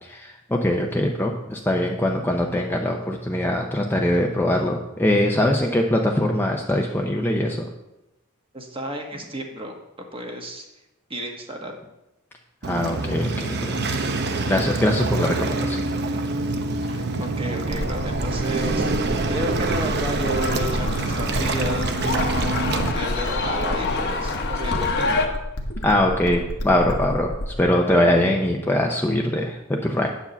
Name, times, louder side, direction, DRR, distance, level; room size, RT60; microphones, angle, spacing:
voice 1, 0.0-7.7 12.6-13.8 14.5-15.8 25.8-30.1, left 1 dB, 10° left, 1 dB, 0.6 m, -22 dB
voice 2, 8.5-9.8 10.1-10.6 11.1-11.8 16.8-18.9 19.3-22.0 22.6-25.3, equal, 25° right, 2 dB, 1.3 m, -32 dB
Waves surf, 12.6-22.9, right 3 dB, 50° right, 0.7 m, -26 dB
sound 1, 17.7-27.7, left 1 dB, 75° left, 1.2 m, -31 dB
sound 2, 20.1-25.3, left 3 dB, 50° left, 1.0 m, -27 dB
9.2 x 4.8 x 7.0 m, 0.95 s
head